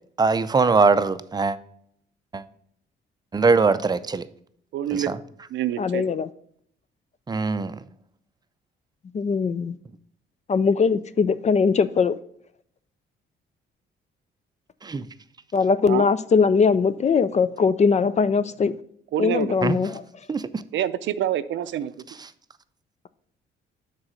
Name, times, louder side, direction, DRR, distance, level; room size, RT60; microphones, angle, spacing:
voice 1, 0.2-1.6 2.3-2.4 3.3-4.3 4.9-5.2 7.3-7.8 14.8-15.1 19.6-19.8 20.3-20.6, right 4 dB, 20° right, 0.5 m, -21 dB
voice 2, 4.7-5.2 5.5-6.0 15.8-16.1 19.1-19.6 20.7-21.9, right 11 dB, 70° right, 0.5 m, -26 dB
voice 3, 5.8-6.3 9.1-9.8 10.5-12.2 15.5-18.7 19.2-20.0, left 5 dB, 35° left, 0.4 m, -21 dB
6.3 x 4.1 x 6.1 m
cardioid pair, 90°, 20 cm